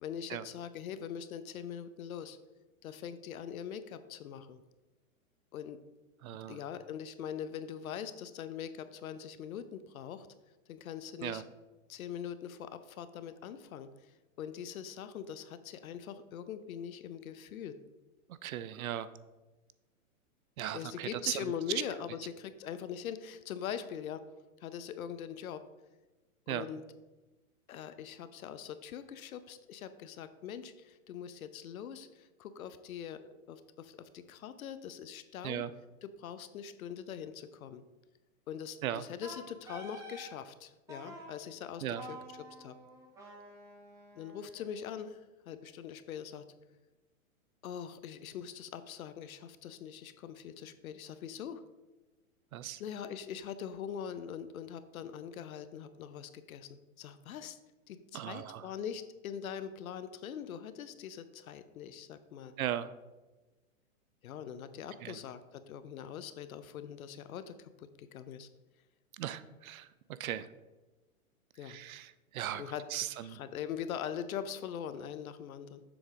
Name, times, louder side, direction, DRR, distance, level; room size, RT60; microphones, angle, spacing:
voice 1, 0.0-2.4 2.8-4.6 5.5-5.8 6.5-10.3 10.7-11.4 11.9-14.1 14.4-17.8 20.7-24.2 24.6-25.6 26.5-26.8 27.7-35.6 36.0-37.8 38.5-42.8 44.2-46.4 47.6-51.6 52.8-57.6 57.9-62.6 64.2-68.5 71.6-71.8 72.6-72.8 73.2-75.8, left 8 dB, 70° left, 12 dB, 0.7 m, -42 dB
voice 2, 6.2-6.6 11.2-11.4 18.3-19.1 20.6-21.5 26.5-26.6 35.4-35.7 38.8-39.0 41.8-42.0 52.5-52.8 58.1-58.7 62.6-62.9 65.0-65.2 69.2-70.5 71.6-72.6 72.9-73.4, right 11 dB, 75° right, 15 dB, 0.6 m, -37 dB
Wind instrument woodwind instrument, 39.2-40.3 40.9-41.3 42.0-45.0, right 1 dB, 5° right, 0.7 m, -49 dB
7.0 x 3.5 x 5.1 m, 1.1 s
hypercardioid pair, 145°, 43 cm